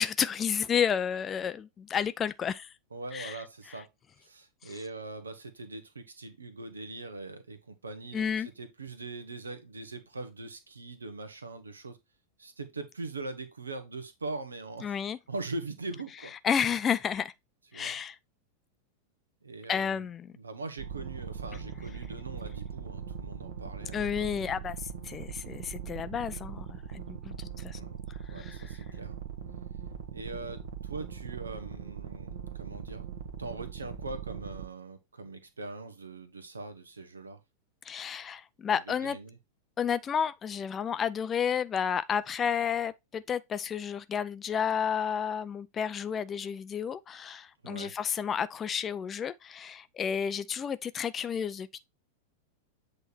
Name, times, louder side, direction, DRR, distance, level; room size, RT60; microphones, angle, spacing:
voice 1, 0.0-2.7 3.1-3.4 8.1-8.5 14.8-15.2 16.4-17.3 17.7-18.2 19.7-20.3 23.9-24.8 25.0-27.8 28.4-28.6 37.9-39.2 39.8-51.7, left 7 dB, 25° left, 0.4 m, -31 dB
voice 2, 2.9-3.9 4.2-12.0 12.4-15.0 15.3-16.3 17.7-17.9 19.4-20.1 20.3-24.3 27.7-28.0 28.3-29.2 30.1-33.1 33.4-37.4 38.7-39.4 47.6-47.9, right 3 dB, 75° right, 1.1 m, -41 dB
sound 1, 20.8-34.6, right 7 dB, 60° right, 1.2 m, -41 dB
8.0 x 3.3 x 4.4 m
figure-of-eight pair, 90°, 0 cm